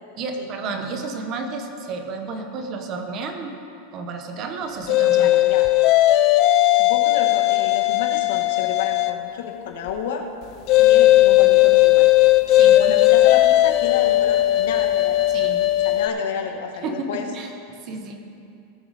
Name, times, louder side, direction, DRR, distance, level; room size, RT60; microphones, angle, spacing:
voice 1, 0.2-3.6 3.9-5.3 12.5-12.9 15.3-15.6 16.8-17.5 17.8-18.3, right 4 dB, 30° right, 5 dB, 1.0 m, -31 dB
sound 1, 4.9-9.3 10.7-16.1, left 15 dB, 35° left, 0.4 m, -17 dB
voice 2, 5.1-5.7 6.8-10.3 10.8-12.1 12.8-15.3 15.8-17.3, left 7 dB, 70° left, 4 dB, 1.2 m, -31 dB
18.0 x 6.8 x 4.1 m, 2.5 s
supercardioid pair, 170°, 0 cm